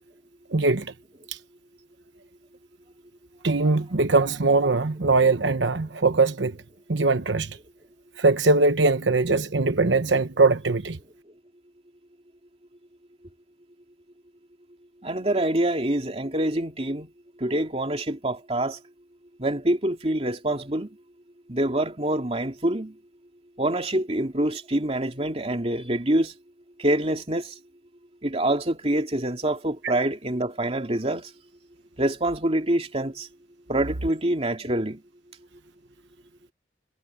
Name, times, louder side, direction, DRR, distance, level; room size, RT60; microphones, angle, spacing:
voice 1, 0.5-0.9 3.4-6.5 6.9-7.5 8.2-11.0, right 3 dB, 80° right, 1.0 m, -21 dB
voice 2, 15.0-17.1 17.4-18.8 19.4-20.9 21.5-23.0 23.6-26.3 26.8-27.6 28.2-31.3 32.0-33.3 33.7-35.0, right 1 dB, 35° right, 2.6 m, -26 dB
head